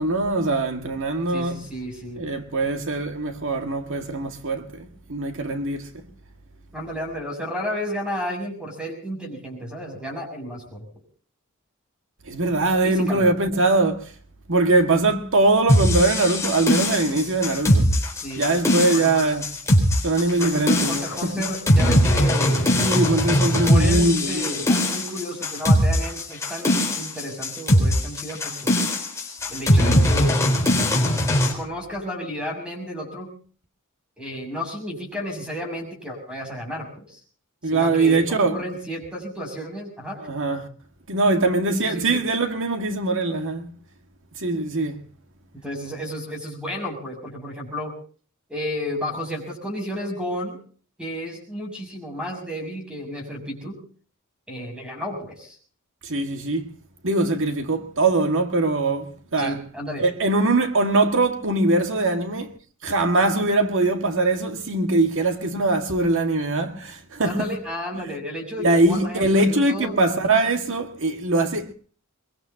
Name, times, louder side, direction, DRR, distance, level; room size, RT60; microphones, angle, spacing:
voice 1, 0.0-1.6 2.2-5.9 12.3-14.1 14.5-17.9 18.4-19.5 20.0-21.5 22.8-24.6 37.6-38.6 40.2-40.7 41.1-43.7 44.4-45.0 56.0-56.7 57.0-59.6 60.0-62.5 62.8-67.5 68.6-71.7, right 2 dB, 65° right, 2.0 m, -22 dB
voice 2, 1.3-2.3 6.7-10.9 12.8-13.3 18.2-18.5 18.9-19.3 20.3-22.8 23.5-28.8 29.5-30.4 31.5-33.3 34.2-37.2 37.7-40.2 41.8-42.2 45.6-47.9 48.5-50.6 51.0-53.8 54.5-55.5 59.4-60.0 67.2-70.0, equal, 5° right, 6.6 m, -32 dB
sound 1, 15.7-31.5, left 1 dB, 15° left, 4.1 m, -20 dB
23.5 x 21.5 x 2.9 m
head